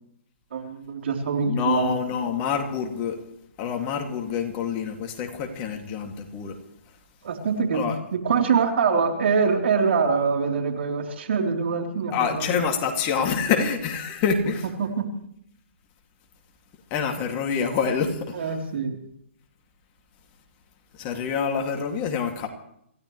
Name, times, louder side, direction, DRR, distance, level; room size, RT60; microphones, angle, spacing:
voice 1, 0.5-2.0 7.2-12.5 14.8-15.1 18.3-19.0, right 5 dB, 60° right, 3 dB, 3.6 m, -24 dB
voice 2, 1.4-3.2 3.6-6.6 7.7-8.0 12.1-14.7 16.9-18.5 21.0-22.5, left 6 dB, 25° left, 3 dB, 2.4 m, -26 dB
27.0 x 16.5 x 3.2 m, 0.73 s
hypercardioid pair, 145°, 7 cm